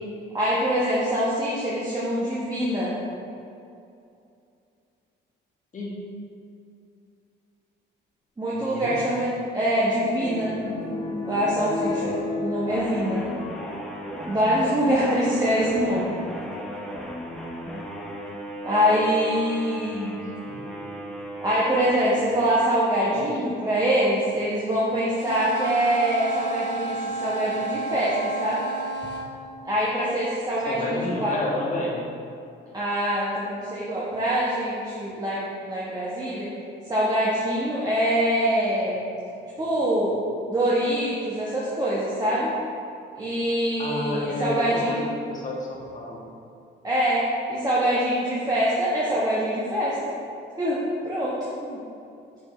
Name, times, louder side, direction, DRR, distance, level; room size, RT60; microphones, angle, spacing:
voice 1, 0.3-2.9 8.4-10.5 10.8-13.2 14.3-16.2 18.6-20.2 21.4-28.6 29.6-31.3 32.7-36.5 36.9-39.0 39.6-40.1 40.5-42.5 43.1-45.1 46.8-50.0 50.6-51.4 51.6-51.7, equal, 20° right, -8 dB, 1.2 m, -24 dB
voice 2, 8.5-9.0 15.7-15.8 19.8-20.6 23.0-23.2 30.6-32.0 43.8-46.2, left 1 dB, 40° left, -3 dB, 1.4 m, -31 dB
sound 1, 9.3-14.9 15.7-16.1 17.3-17.4 18.1-18.5 20.6-21.2 21.9-22.0 22.2-22.3, left 3 dB, 80° left, 1.3 m, -35 dB
sound 2, 12.7-22.9, equal, 5° left, 0.8 m, -36 dB
sound 3, 25.2-29.3, right 3 dB, 65° left, 0.7 m, -31 dB
6.9 x 3.5 x 4.3 m, 2.6 s
cardioid pair, 90°, 20 cm